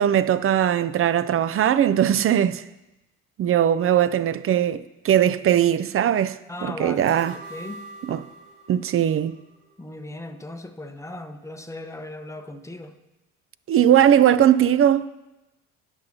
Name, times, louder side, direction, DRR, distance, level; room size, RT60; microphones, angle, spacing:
voice 1, 0.0-2.6 3.4-7.3 8.1-8.3 8.7-9.4 13.7-15.1, right 10 dB, 35° right, 0.5 m, -20 dB
voice 2, 6.5-7.8 9.8-12.9, left 2 dB, 5° left, 1.0 m, -37 dB
sound 1, 6.9-10.1 10.4-10.5, right 2 dB, 75° right, 3.0 m, -44 dB
17.5 x 7.4 x 2.8 m
hypercardioid pair, 55°, 41 cm